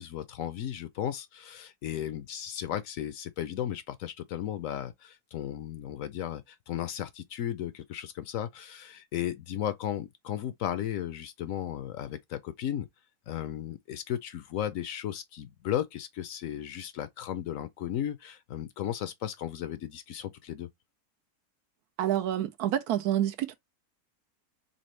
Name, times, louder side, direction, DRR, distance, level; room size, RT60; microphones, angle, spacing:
voice 1, 0.0-12.9 13.3-20.7, left 11 dB, 70° left, 0.9 m, -35 dB
voice 2, 22.0-23.5, right 11 dB, 80° right, 1.1 m, -28 dB
4.2 x 3.4 x 3.1 m
omnidirectional pair, 1.6 m